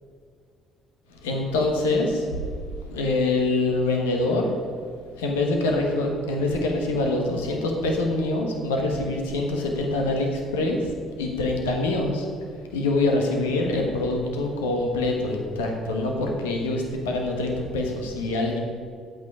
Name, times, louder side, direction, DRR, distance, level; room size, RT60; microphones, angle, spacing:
voice 1, 1.1-2.3 2.9-4.5 5.2-10.9 11.2-12.3 12.7-18.6, left 2 dB, 80° left, 2 dB, 1.3 m, -25 dB
9.2 x 8.4 x 4.9 m, 2.1 s
hypercardioid pair, 55°, 0 cm